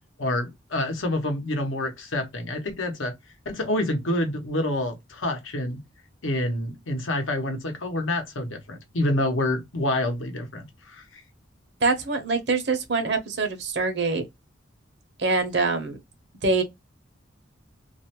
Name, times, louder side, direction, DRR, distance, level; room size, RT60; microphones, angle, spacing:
voice 1, 0.2-3.1 3.5-5.8 6.2-11.2, left 1 dB, 85° left, 0.9 m, -27 dB
voice 2, 11.8-14.2 15.2-16.0 16.4-16.6, right 3 dB, 60° right, 0.8 m, -24 dB
2.5 x 2.1 x 2.8 m
head